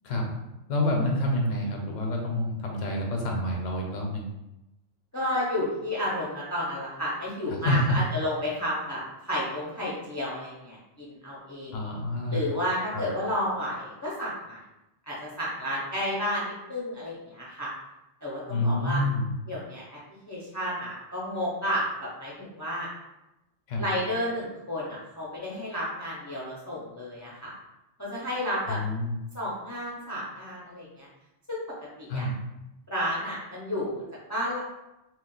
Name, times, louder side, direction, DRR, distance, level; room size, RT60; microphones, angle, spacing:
voice 1, 0.0-0.3 0.7-4.3 7.5-8.0 11.7-12.5 12.9-13.0 18.5-19.3 23.7-23.8 28.7-29.2 32.1-32.4, left 1 dB, 85° left, 0 dB, 0.9 m, -28 dB
voice 2, 5.1-11.7 12.3-14.6 15.1-17.7 18.2-19.0 19.5-19.8 20.3-22.9 23.8-27.5 28.0-28.8 29.3-31.1 31.5-31.6 32.0-32.3 32.9-34.0 34.3-34.6, equal, 30° left, -6 dB, 0.3 m, -31 dB
2.3 x 2.2 x 3.8 m, 0.95 s
omnidirectional pair, 1.3 m